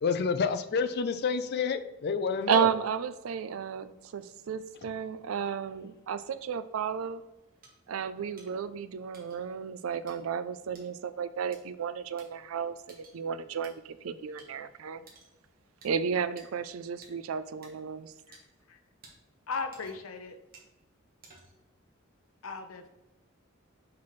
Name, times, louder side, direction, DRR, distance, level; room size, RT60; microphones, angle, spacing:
voice 1, 0.0-2.7, left 5 dB, 50° left, 10 dB, 0.4 m, -29 dB
voice 2, 2.5-7.2 7.9-15.0 15.8-18.1, right 7 dB, 85° right, 13 dB, 0.4 m, -33 dB
sound 1, 7.6-7.7 8.4-8.5 9.1-9.4 10.1-10.2 10.7-10.9 11.5-11.6 12.2-12.3 12.9-13.2 13.6-13.7 14.4-14.5 15.1-15.3 15.8-15.9 16.4-16.5 17.0-17.1 17.6-17.7 18.3-18.4 19.0-19.1 19.7-20.1 20.5-20.7 21.2-21.6, right 3 dB, 45° right, 1.4 m, -54 dB
voice 3, 19.5-20.4 22.4-22.9, left 4 dB, 85° left, 7 dB, 0.7 m, -37 dB
5.9 x 5.7 x 3.2 m, 1.0 s
head